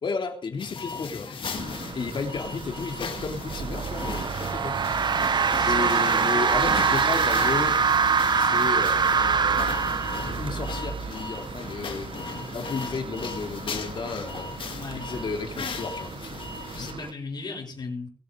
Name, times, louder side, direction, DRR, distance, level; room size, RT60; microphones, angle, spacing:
voice 1, 0.0-1.3 1.9-5.3 5.6-7.8 8.3-9.7 10.3-14.5 14.9-16.1, left 4 dB, 70° left, 3.4 m, -33 dB
sound 1, 0.6-16.9, left 5 dB, 90° left, 2.4 m, -37 dB
sound 2, 1.5-17.1, right 6 dB, 80° right, 1.2 m, -36 dB
sound 3, 3.7-10.7, right 5 dB, 60° right, 0.8 m, -23 dB
voice 2, 5.5-6.3 14.7-15.1 16.7-18.1, left 3 dB, 55° left, 5.6 m, -36 dB
21.5 x 8.4 x 5.4 m
wide cardioid pair, 165°, 9 cm